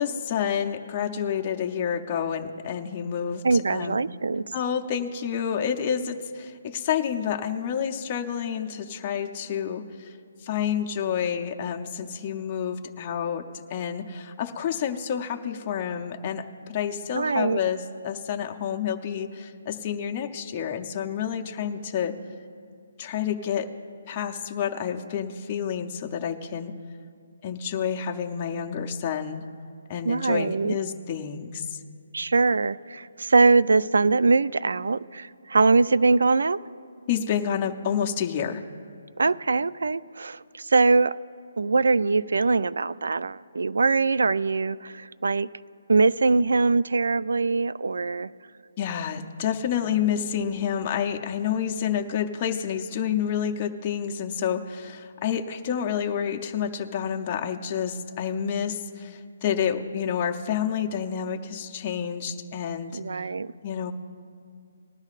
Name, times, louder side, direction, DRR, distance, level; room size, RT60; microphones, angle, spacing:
voice 1, 0.0-4.0 4.5-10.1 10.4-22.2 23.0-23.7 24.1-26.7 27.4-29.4 29.9-31.8 37.1-38.6 48.8-63.0 63.6-63.9, left 8 dB, 20° left, 2 dB, 0.6 m, -29 dB
voice 2, 3.4-4.4 17.1-17.6 30.0-30.7 32.1-36.6 39.2-41.2 41.6-45.5 45.9-48.3 62.9-63.5, right 3 dB, 85° right, 17 dB, 0.4 m, -22 dB
19.5 x 12.5 x 2.5 m, 2.3 s
hypercardioid pair, 175°, 0 cm